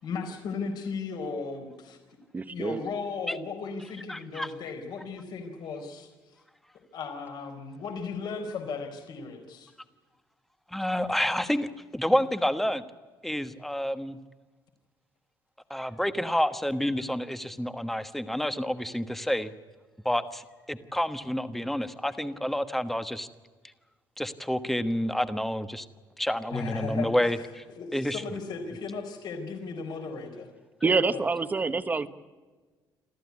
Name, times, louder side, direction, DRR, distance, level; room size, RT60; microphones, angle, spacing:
voice 1, 0.0-2.0 2.5-6.4 6.9-9.7 26.5-27.5 27.8-30.5 30.8-31.2, left 4 dB, 60° left, 5 dB, 4.2 m, -36 dB
voice 2, 2.3-2.8 30.8-32.1, right 4 dB, 20° right, 11 dB, 1.3 m, -26 dB
voice 3, 4.1-4.5 10.7-11.7 11.9-12.8 13.2-14.2 15.7-19.5 20.0-23.3 24.2-25.9 26.2-27.6 27.9-28.2, equal, 5° left, 10 dB, 1.3 m, -29 dB
28.0 x 14.0 x 9.6 m, 1.3 s
cardioid pair, 135°, 8 cm